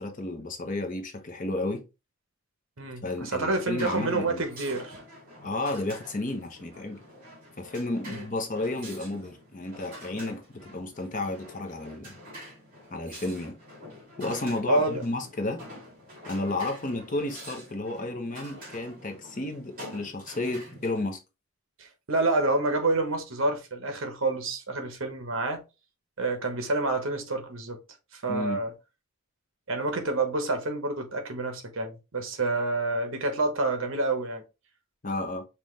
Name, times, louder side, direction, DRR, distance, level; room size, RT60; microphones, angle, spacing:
voice 1, 0.0-1.8 3.0-4.4 5.4-7.0 7.6-12.2 12.9-13.6 14.2-15.6 16.3-21.2 28.3-28.6 35.0-35.4, left 2 dB, 40° left, 0.8 m, -32 dB
voice 2, 2.8-5.0 8.1-8.2 14.7-15.0 21.8-25.6 26.2-27.8 28.1-28.7 29.7-34.4, right 2 dB, 65° right, 1.0 m, -28 dB
sound 1, 3.5-21.0, equal, 40° right, 2.8 m, -46 dB
5.6 x 2.4 x 3.2 m
head